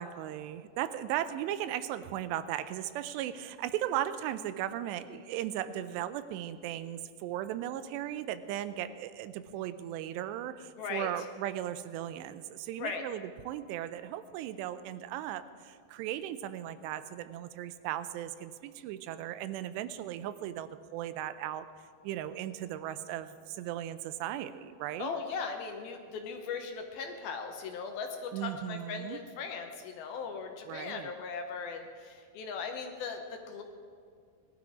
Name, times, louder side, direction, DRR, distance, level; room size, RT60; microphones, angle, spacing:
voice 1, 0.0-21.7 22.0-25.2 28.3-29.2 30.7-31.1, right 12 dB, 85° right, 12 dB, 2.7 m, -37 dB
voice 2, 10.8-11.1 12.8-13.0 25.0-33.6, left 5 dB, 70° left, 4 dB, 2.5 m, -38 dB
19.0 x 12.5 x 4.9 m, 2.2 s
omnidirectional pair, 5.0 m